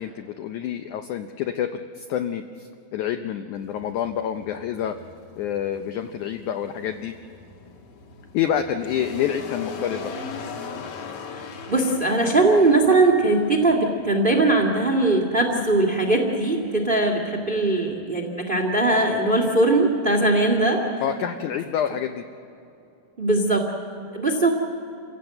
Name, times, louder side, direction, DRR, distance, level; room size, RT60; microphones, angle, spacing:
voice 1, 0.0-5.0 5.4-7.1 8.3-10.1 21.0-22.2, left 9 dB, 80° left, 7 dB, 1.8 m, -28 dB
sound 1, 3.6-18.0, left 5 dB, 60° left, 2.6 m, -40 dB
voice 2, 11.4-20.8 23.2-24.5, right 2 dB, 25° right, 1 dB, 1.1 m, -20 dB
27.5 x 16.5 x 7.8 m, 2.8 s
omnidirectional pair, 4.3 m